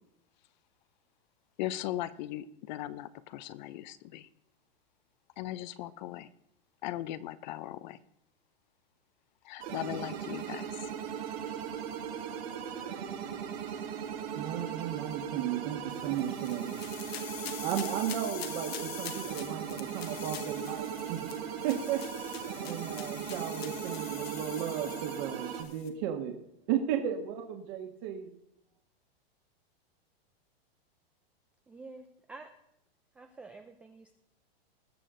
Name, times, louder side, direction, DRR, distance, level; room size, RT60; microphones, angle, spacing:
voice 1, 1.6-4.3 5.4-6.3 6.8-8.0 9.4-10.7, left 14 dB, 50° left, 16 dB, 0.6 m, -38 dB
sound 1, 9.6-25.6, right 8 dB, 75° right, 4.3 m, -38 dB
voice 2, 14.3-16.8 17.4-21.2 21.6-26.3 26.7-28.3, right 10 dB, 50° right, 3 dB, 1.6 m, -35 dB
sound 2, 15.9-25.9, left 9 dB, 80° left, 1.6 m, -45 dB
voice 3, 31.7-32.5 33.2-34.1, right 3 dB, 5° right, 5 dB, 0.3 m, -49 dB
20.0 x 6.6 x 3.8 m, 0.78 s
hypercardioid pair, 140°, 30 cm